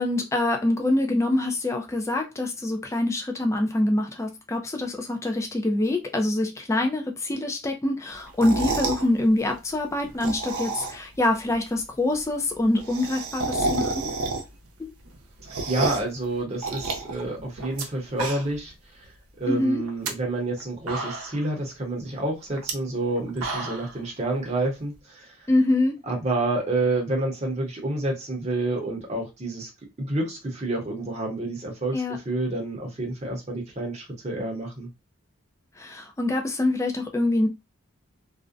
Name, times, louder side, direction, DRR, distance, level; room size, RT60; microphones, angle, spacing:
voice 1, 0.0-14.1 14.8-14.9 19.5-19.8 25.5-26.0 31.9-32.2 35.8-37.5, left 1 dB, 15° left, 0.3 m, -25 dB
sound 1, 8.3-9.1 10.0-11.2 11.5-11.6 11.8-11.9 12.1-12.2 12.5-14.7 15.0-16.1 16.6-17.8 18.1-18.7 19.0-19.1 19.8-20.1 20.6-20.7 20.9-21.5 22.5-22.7 23.2-23.9, right 3 dB, 85° right, 0.6 m, -30 dB
voice 2, 15.7-19.1 19.4-25.5 26.0-29.7 30.0-34.9, right 2 dB, 30° right, 0.7 m, -29 dB
2.4 x 2.1 x 2.4 m
head